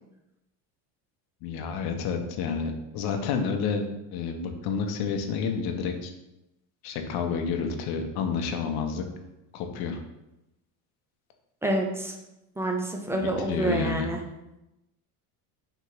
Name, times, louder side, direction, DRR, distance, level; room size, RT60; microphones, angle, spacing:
voice 1, 1.4-3.8 4.1-6.1 6.8-9.0 9.5-10.0 13.1-14.1, left 5 dB, 60° left, 5 dB, 0.7 m, -29 dB
voice 2, 11.6-12.1 12.6-14.2, right 1 dB, 5° right, 1 dB, 0.4 m, -28 dB
3.5 x 3.0 x 4.5 m, 0.92 s
cardioid pair, 120°, 42 cm